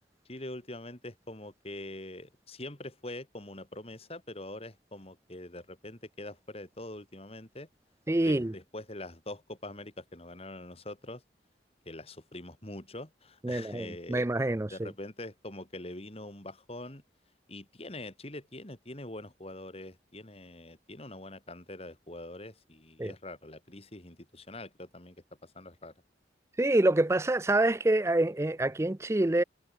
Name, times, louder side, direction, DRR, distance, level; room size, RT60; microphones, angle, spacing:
voice 1, 0.2-7.7 8.2-11.2 11.8-14.3 14.7-17.0 17.5-25.2 25.4-25.9, left 1 dB, 35° left, 3.5 m, -44 dB
voice 2, 8.1-8.5 13.4-14.9 23.0-23.1 26.6-29.4, right 1 dB, 15° right, 0.5 m, -26 dB
head